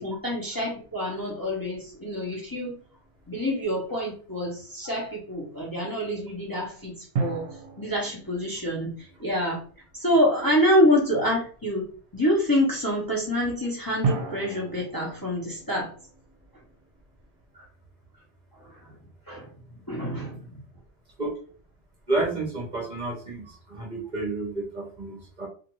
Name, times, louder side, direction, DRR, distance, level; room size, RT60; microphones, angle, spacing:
voice 1, 0.0-2.8 3.3-7.5 7.8-8.9 9.2-9.6 9.9-11.8 12.1-15.9 17.5-17.6 19.3-19.5 19.9-20.6, equal, 20° left, -5 dB, 0.8 m, -26 dB
sound 1, 2.8-3.5 7.1-10.0 14.0-17.3, right 4 dB, 75° right, 0.9 m, -34 dB
voice 2, 22.1-25.5, right 2 dB, 45° right, -2 dB, 0.9 m, -30 dB
2.5 x 2.4 x 3.0 m, 0.41 s
omnidirectional pair, 1.2 m